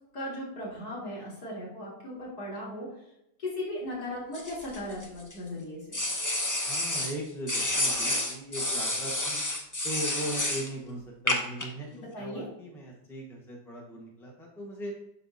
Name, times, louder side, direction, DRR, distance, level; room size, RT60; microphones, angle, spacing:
voice 1, 0.1-2.9 3.4-6.0 11.9-12.5, left 1 dB, 60° left, -6 dB, 3.6 m, -37 dB
sound 1, 4.3-5.3 5.9-7.1 7.5-10.7 11.3-11.7, left 1 dB, 20° left, 0.5 m, -29 dB
voice 2, 6.7-9.4 9.8-11.9 12.2-14.9, right 1 dB, ahead, -1 dB, 1.1 m, -39 dB
11.5 x 4.1 x 2.7 m, 0.82 s
omnidirectional pair, 1.9 m